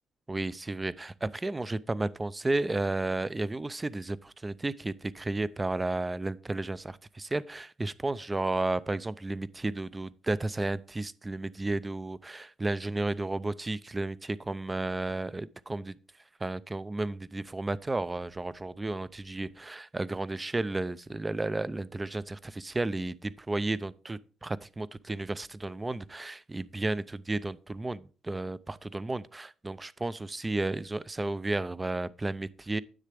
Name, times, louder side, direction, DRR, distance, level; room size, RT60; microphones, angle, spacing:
voice 1, 0.3-16.0 16.4-32.8, right 2 dB, 20° right, 0.4 m, -33 dB
9.9 x 7.5 x 3.4 m
cardioid pair, 90°, 0 cm